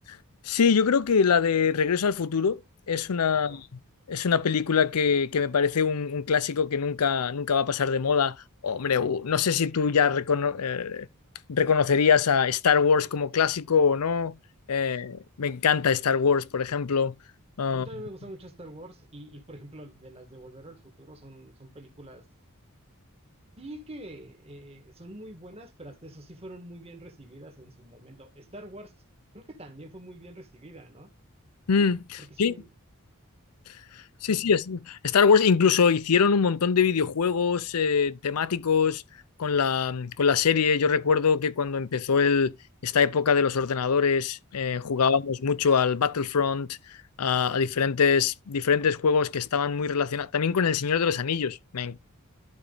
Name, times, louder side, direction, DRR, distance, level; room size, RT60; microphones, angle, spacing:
voice 1, 0.4-2.6 2.9-3.6 4.1-8.4 8.6-11.1 11.5-14.3 14.7-17.1 17.6-17.9 31.7-32.5 34.2-39.0 39.4-42.5 42.8-46.8 47.2-52.0, left 6 dB, 90° left, 0.6 m, -23 dB
voice 2, 17.7-22.2 23.6-28.9 29.3-31.1 32.2-32.7 34.3-34.4 44.9-45.2, right 1 dB, 25° right, 1.7 m, -45 dB
12.0 x 4.5 x 4.0 m
head